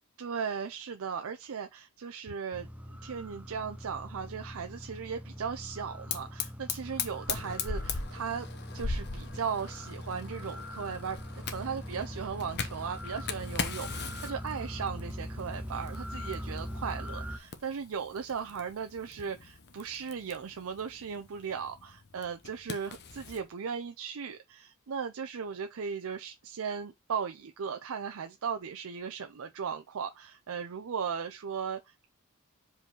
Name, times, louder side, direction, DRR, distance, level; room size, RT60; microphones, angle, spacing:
voice 1, 0.2-8.5 8.7-32.1, right 6 dB, 70° right, 0.5 m, -37 dB
sound 1, 2.5-17.4, equal, 5° right, 0.7 m, -42 dB
Fire, 6.1-23.4, left 5 dB, 50° left, 0.9 m, -40 dB
4.9 x 3.9 x 5.2 m
head